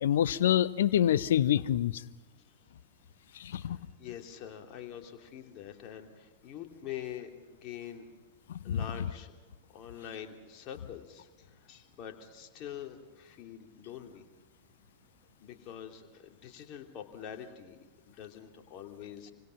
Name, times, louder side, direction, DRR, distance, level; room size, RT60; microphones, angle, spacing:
voice 1, 0.0-2.0 3.4-3.8 8.7-8.8, left 10 dB, 60° left, 19 dB, 0.8 m, -26 dB
voice 2, 3.3-8.1 8.6-9.3 9.7-14.2 15.4-17.8 18.0-19.3, left 9 dB, 40° left, 3 dB, 2.9 m, -45 dB
27.5 x 25.0 x 5.9 m, 1.2 s
figure-of-eight pair, 90°, 0 cm